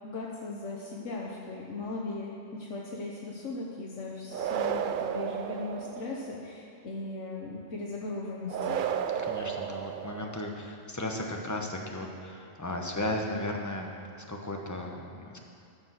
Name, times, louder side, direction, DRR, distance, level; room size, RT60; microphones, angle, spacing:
voice 1, 0.0-8.8, left 3 dB, 75° left, -3 dB, 1.5 m, -38 dB
sound 1, 4.3-6.4 8.5-10.6, right 8 dB, 60° right, 0.5 m, -33 dB
voice 2, 9.2-15.4, left 1 dB, 15° left, 1 dB, 1.0 m, -35 dB
13.5 x 7.1 x 6.3 m, 2.5 s
omnidirectional pair, 1.3 m